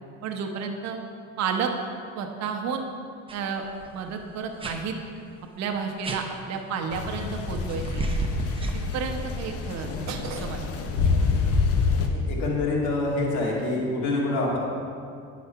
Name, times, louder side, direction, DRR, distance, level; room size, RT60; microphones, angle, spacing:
voice 1, 0.2-1.0 1.4-1.7 2.2-2.9 3.3-3.6 3.9-4.9 5.6-8.0 8.9-10.7, right 6 dB, 60° right, 3 dB, 0.9 m, -31 dB
sound 1, 3.3-3.4 3.7-4.0 4.6-4.8 6.0-6.2 7.5-9.4, right 2 dB, 20° right, 0.8 m, -31 dB
sound 2, 6.9-12.1, left 4 dB, 50° left, 0.9 m, -27 dB
voice 2, 12.1-14.6, left 2 dB, 70° left, -3 dB, 2.1 m, -26 dB
9.8 x 4.2 x 5.7 m, 2.4 s
supercardioid pair, 95°, 30 cm